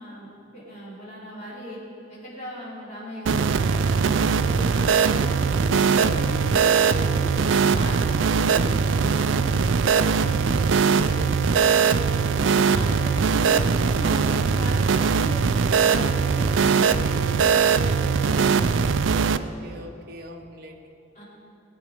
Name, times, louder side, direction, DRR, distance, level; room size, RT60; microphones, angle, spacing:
voice 1, 0.0-1.8 2.1-4.1 4.4-7.3 7.7-11.8 12.5-19.1 21.1-21.2, equal, 40° left, -7 dB, 3.9 m, -38 dB
sound 1, 3.3-19.4, right 5 dB, 85° right, 0.4 m, -21 dB
voice 2, 19.2-20.9, equal, 55° right, 2 dB, 1.2 m, -43 dB
18.0 x 8.6 x 5.3 m, 2.7 s
head